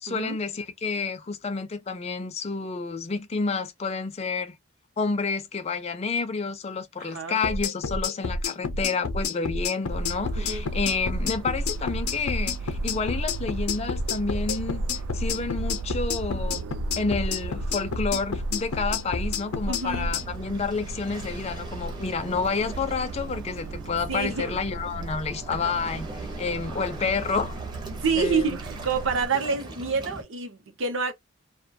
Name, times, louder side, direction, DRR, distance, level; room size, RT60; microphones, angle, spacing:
voice 1, 0.0-4.6 5.0-14.8 15.1-16.7 17.0-26.1 26.4-27.6 28.2-28.6, left 4 dB, 30° left, 0.3 m, -29 dB
voice 2, 7.0-7.4 10.4-10.6 19.7-20.1 24.1-24.5 25.5-25.7 28.0-31.1, right 5 dB, 65° right, 0.7 m, -28 dB
sound 1, 7.4-20.2, left 3 dB, 85° left, 0.5 m, -29 dB
sound 2, 9.9-29.3, right 3 dB, 90° right, 0.3 m, -37 dB
Waves surf, 19.9-30.2, right 2 dB, 20° right, 0.5 m, -42 dB
2.2 x 2.2 x 2.5 m
head